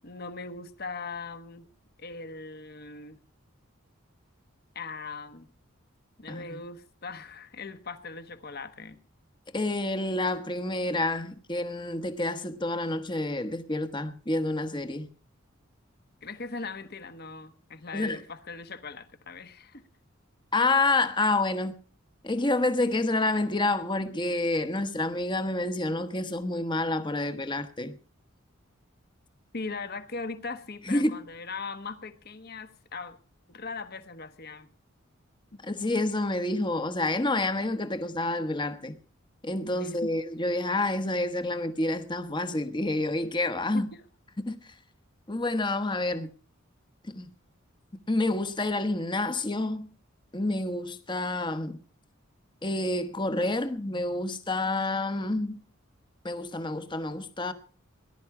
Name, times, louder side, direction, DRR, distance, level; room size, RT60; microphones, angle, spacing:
voice 1, 0.0-1.7 2.0-3.2 4.7-5.5 6.2-9.0 16.2-19.8 29.5-33.2 33.5-34.7 35.5-35.6 39.8-40.1 43.7-43.8, left 4 dB, 45° left, 1.2 m, -39 dB
voice 2, 6.3-6.6 9.5-15.1 17.9-18.2 20.5-21.7 22.2-27.9 30.9-31.2 35.6-39.0 39.4-43.9 44.5-44.7 45.3-46.3 47.0-47.3 48.1-49.9 50.3-51.8 52.6-55.6 56.2-57.5, left 2 dB, 20° left, 1.1 m, -28 dB
19.0 x 11.5 x 4.8 m
head